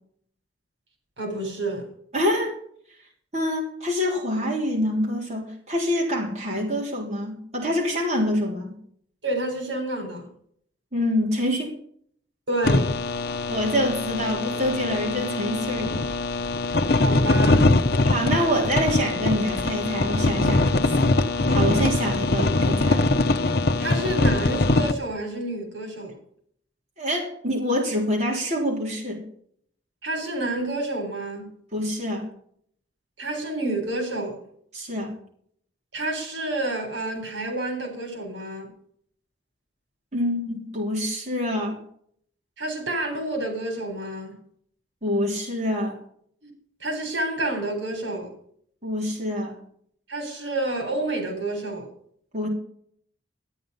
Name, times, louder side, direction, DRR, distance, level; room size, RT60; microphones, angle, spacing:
voice 1, 1.2-1.9 9.2-10.3 12.5-12.9 16.9-17.7 23.8-26.1 30.0-31.5 33.2-34.4 35.9-38.7 42.6-44.4 46.4-46.5 46.8-48.3 50.1-51.9, right 2 dB, 80° right, 3.7 m, -29 dB
voice 2, 2.1-2.6 3.3-8.7 10.9-11.7 13.5-15.9 18.0-20.8 21.5-23.1 27.0-29.2 31.7-32.2 34.7-35.1 40.1-41.8 45.0-46.0 48.8-49.6 52.3-52.5, equal, 35° right, 3.5 m, -26 dB
sound 1, 12.6-24.9, left 2 dB, 55° left, 0.8 m, -22 dB
13.0 x 9.4 x 5.4 m
head